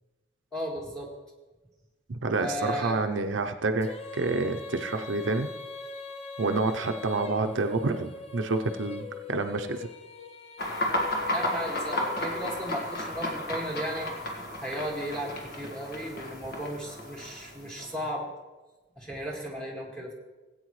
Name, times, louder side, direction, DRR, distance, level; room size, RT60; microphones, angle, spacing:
voice 1, 0.5-1.1 2.4-3.0 11.3-14.1 14.6-18.3 19.0-20.1, equal, 5° left, -3 dB, 1.9 m, -35 dB
voice 2, 2.1-5.5 6.4-9.9, right 3 dB, 80° right, 6 dB, 0.6 m, -28 dB
Female singing, 3.8-13.0, left 4 dB, 30° left, 0.5 m, -41 dB
sound 1, 10.6-18.1, left 1 dB, 50° left, 1.6 m, -33 dB
17.5 x 8.7 x 3.2 m, 1.2 s
head